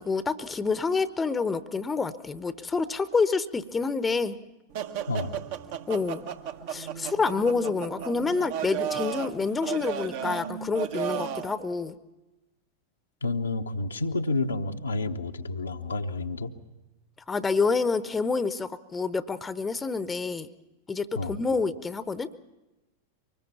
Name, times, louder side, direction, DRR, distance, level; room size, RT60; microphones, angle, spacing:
voice 1, 0.0-4.4 5.9-6.2 6.7-11.9 17.3-20.5 20.9-22.3, left 4 dB, 15° left, 15 dB, 0.8 m, -28 dB
sound 1, 4.7-11.5, right 9 dB, 50° right, 1.1 m, -34 dB
voice 2, 5.1-5.4 13.2-16.5 21.1-21.4, left 2 dB, 75° left, 4 dB, 1.0 m, -30 dB
24.5 x 20.5 x 7.2 m, 1.1 s
figure-of-eight pair, 90°, 0 cm